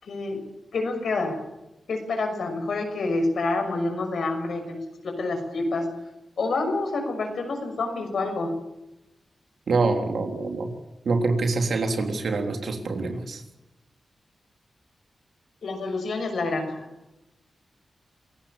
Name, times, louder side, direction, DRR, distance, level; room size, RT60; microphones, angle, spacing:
voice 1, 0.0-0.4 0.7-1.4 1.9-5.9 6.4-8.5 15.6-16.9, left 3 dB, 75° left, 5 dB, 6.2 m, -28 dB
voice 2, 9.7-10.7 11.0-13.4, right 3 dB, 75° right, 5 dB, 3.4 m, -25 dB
27.0 x 17.0 x 7.3 m, 0.94 s
cardioid pair, 60°, 0 cm